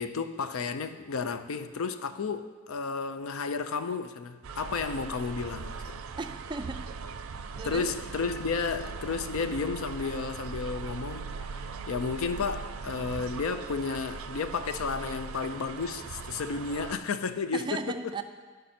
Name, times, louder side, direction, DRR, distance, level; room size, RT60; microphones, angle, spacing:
voice 1, 0.0-6.0 7.6-11.3 11.9-17.8, left 5 dB, 85° left, 0.5 m, -32 dB
sound 1, 4.4-17.0, right 5 dB, 90° right, 0.5 m, -40 dB
voice 2, 6.2-7.0 7.6-7.9 17.5-18.2, right 3 dB, 25° right, 0.4 m, -36 dB
11.5 x 5.3 x 4.3 m
head